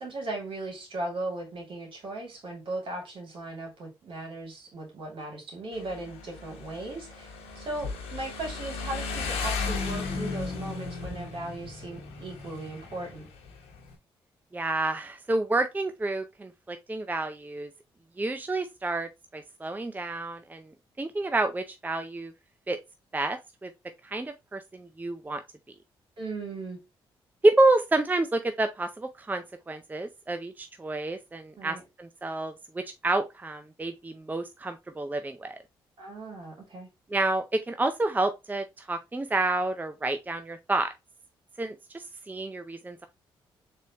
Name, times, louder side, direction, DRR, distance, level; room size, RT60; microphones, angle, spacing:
voice 1, 0.0-13.3 26.2-26.8 31.6-31.8 36.0-36.9, right 2 dB, 60° right, 2.6 m, -37 dB
Motorcycle, 5.7-13.9, left 4 dB, 85° left, 1.1 m, -36 dB
voice 2, 14.5-17.7 18.2-20.7 21.0-22.3 22.7-22.8 23.1-23.7 24.0-25.4 27.4-35.6 37.1-40.9 41.6-43.1, right 2 dB, 15° right, 0.5 m, -29 dB
4.2 x 3.5 x 2.9 m
supercardioid pair, 60°, 10 cm